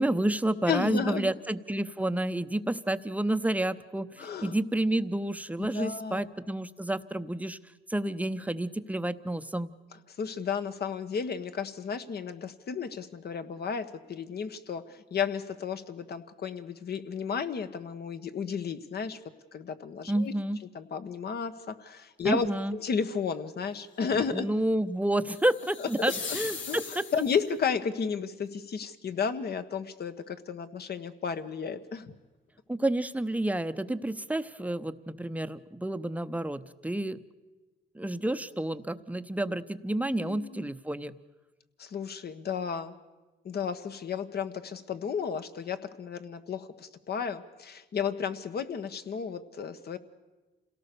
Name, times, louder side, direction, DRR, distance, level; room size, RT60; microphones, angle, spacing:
voice 1, 0.0-7.6 7.9-9.7 20.1-20.6 22.2-22.8 24.3-27.0 32.7-37.2 37.9-41.1, right 1 dB, 5° right, 11 dB, 0.8 m, -30 dB
voice 2, 0.7-1.3 4.2-4.5 5.6-6.3 10.2-19.2 19.5-20.3 20.7-24.5 25.8-26.4 26.7-32.1 40.1-40.7 41.8-43.0 43.4-50.0, left 6 dB, 55° left, 10 dB, 1.3 m, -33 dB
sound 1, 25.3-27.5, left 5 dB, 75° left, 2.6 m, -39 dB
27.5 x 17.5 x 6.9 m, 1.2 s
cardioid pair, 90°, 20 cm